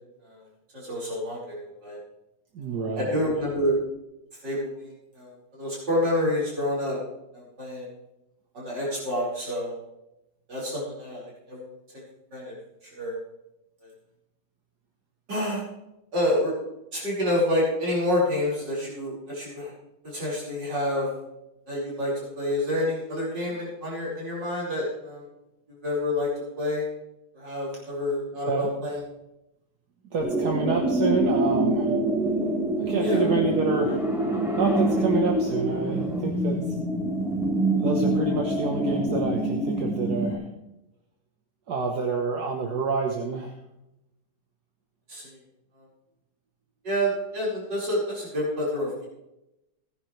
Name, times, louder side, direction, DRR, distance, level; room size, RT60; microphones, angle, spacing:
voice 1, 0.7-2.0 3.0-3.8 4.4-7.0 7.3-7.9 8.5-9.8 10.5-11.6 11.9-12.0 12.3-12.5 12.9-13.2 15.3-15.7 16.1-16.5 16.9-19.7 20.0-21.1 21.7-25.2 25.8-26.3 26.6-26.9 27.4-29.0 33.0-33.2 45.1-45.4 46.8-49.1, left 1 dB, 90° right, -6 dB, 5.8 m, -28 dB
voice 2, 2.5-3.2 28.5-28.7 30.1-31.9 32.8-34.1 34.6-36.6 37.8-40.5 41.7-43.5, right 4 dB, 65° right, 2 dB, 1.9 m, -28 dB
sound 1, 30.2-40.3, right 1 dB, ahead, 3.4 m, -25 dB
18.5 x 10.0 x 3.3 m, 0.90 s
omnidirectional pair, 1.9 m